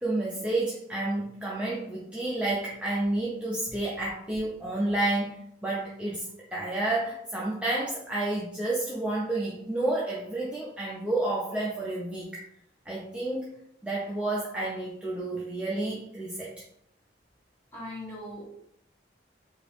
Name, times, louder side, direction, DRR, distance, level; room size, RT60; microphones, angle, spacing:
voice 1, 0.0-12.4 12.9-13.5 13.8-16.5, right 2 dB, 5° right, -6 dB, 0.4 m, -30 dB
voice 2, 17.7-18.4, left 1 dB, 15° left, -6 dB, 1.1 m, -39 dB
2.9 x 2.5 x 3.4 m, 0.75 s
head